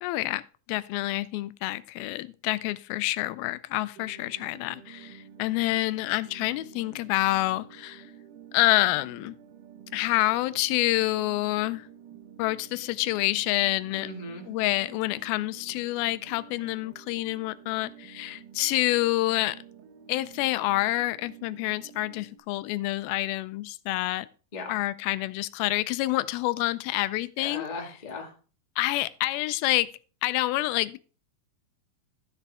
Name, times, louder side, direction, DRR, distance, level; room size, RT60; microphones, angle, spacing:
voice 1, 0.0-8.1 8.5-9.4 9.9-11.9 12.4-14.1 14.5-19.6 20.1-24.3 24.7-27.7 28.8-29.9 30.2-31.0, left 18 dB, 90° left, 16 dB, 2.4 m, -27 dB
sound 1, 3.9-22.4, right 8 dB, 70° right, 2.4 m, -50 dB
voice 2, 14.0-14.4 24.5-24.7 27.4-28.3, left 3 dB, 35° left, 1 dB, 0.6 m, -37 dB
13.5 x 6.7 x 3.5 m, 0.37 s
omnidirectional pair, 4.2 m